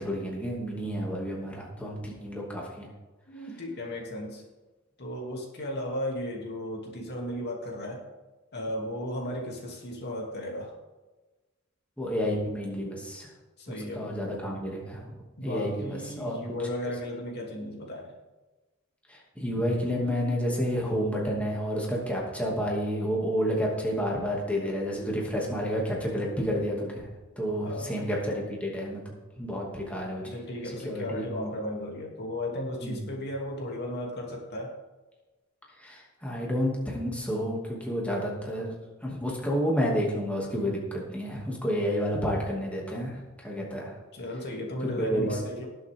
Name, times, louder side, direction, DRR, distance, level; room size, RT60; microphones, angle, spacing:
voice 1, 0.0-2.9 12.0-13.3 13.7-15.0 15.4-16.4 19.1-27.1 27.4-30.2 30.6-31.3 32.8-33.0 35.8-38.8 39.0-43.9 45.0-45.3, equal, 5° left, -3 dB, 2.7 m, -30 dB
voice 2, 3.3-4.4 5.0-8.0 8.5-10.7 13.6-14.1 15.4-18.1 27.6-28.0 30.2-34.7 44.1-45.7, left 1 dB, 50° left, -1 dB, 3.1 m, -35 dB
19.0 x 7.7 x 3.8 m, 1.2 s
head